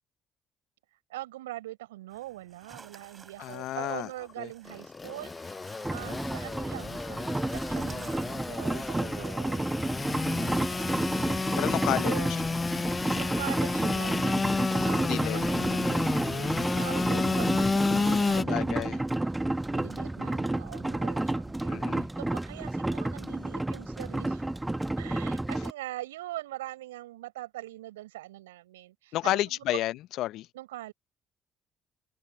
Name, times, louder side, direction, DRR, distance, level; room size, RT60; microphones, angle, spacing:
voice 1, 1.1-5.6 5.9-9.7 10.1-11.4 12.0-12.3 13.1-14.4 14.7-19.0 19.7-21.8 22.2-24.4 25.0-29.8 30.5-30.9, right 16 dB, 80° right, 4.3 m, -42 dB
sound 1, 2.1-11.1, right 5 dB, 35° right, 5.1 m, -55 dB
voice 2, 3.4-4.1 4.4-4.5 11.6-12.2 15.0-15.5 18.4-19.0 21.7-22.1 29.1-30.5, left 15 dB, 65° left, 0.7 m, -31 dB
Engine / Sawing, 4.7-18.4, left 3 dB, 30° left, 0.5 m, -31 dB
sound 2, 5.8-25.7, right 2 dB, 15° right, 1.2 m, -31 dB
open air
hypercardioid pair, 50°, 0 cm